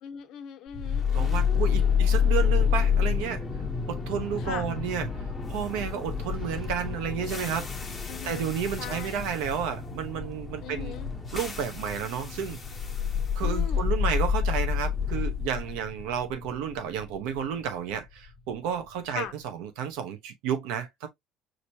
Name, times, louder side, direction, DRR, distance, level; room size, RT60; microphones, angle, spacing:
voice 1, 0.0-2.0 4.4-4.7 8.1-8.5 8.8-9.3 10.6-11.1 13.4-13.9 19.1-19.3, left 9 dB, 60° left, 1.1 m, -40 dB
sound 1, 0.7-18.8, left 7 dB, 20° left, 1.1 m, -29 dB
voice 2, 1.1-3.4 3.9-7.7 8.2-10.9 11.3-12.6 13.4-21.1, right 8 dB, 85° right, 1.1 m, -32 dB
5.0 x 3.0 x 2.8 m
cardioid pair, 135°, 0 cm